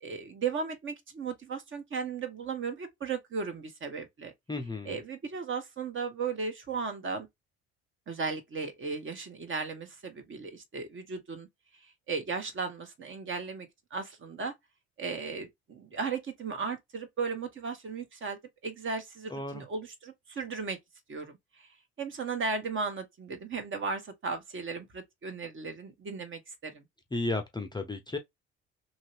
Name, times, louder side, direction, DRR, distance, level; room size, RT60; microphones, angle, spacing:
voice 1, 0.0-4.3 4.9-7.3 8.1-11.5 11.8-14.5 15.0-20.8 21.1-21.7 22.0-26.8, right 5 dB, 35° right, 1.1 m, -36 dB
voice 2, 4.5-5.0 19.3-19.6 27.1-28.2, left 2 dB, 15° left, 0.6 m, -33 dB
2.9 x 2.6 x 3.1 m
hypercardioid pair, 55°, 34 cm